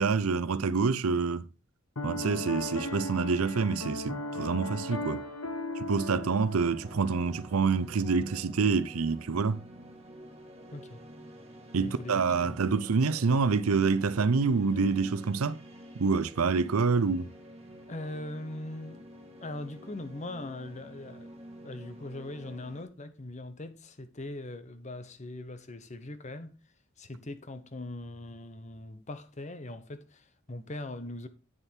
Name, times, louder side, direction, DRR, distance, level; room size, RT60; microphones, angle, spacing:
voice 1, 0.0-1.4 2.0-5.2 5.8-9.6 11.7-15.6 16.0-17.3, right 4 dB, 85° right, 0.6 m, -27 dB
Piano, 2.0-7.3, left 1 dB, 85° left, 1.4 m, -37 dB
sound 1, 6.8-22.8, equal, 30° right, 1.7 m, -49 dB
voice 2, 10.7-11.0 11.8-12.6 17.9-19.0 19.4-21.3 21.6-26.6 27.0-31.3, left 2 dB, 35° left, 0.9 m, -41 dB
9.1 x 6.6 x 4.4 m
head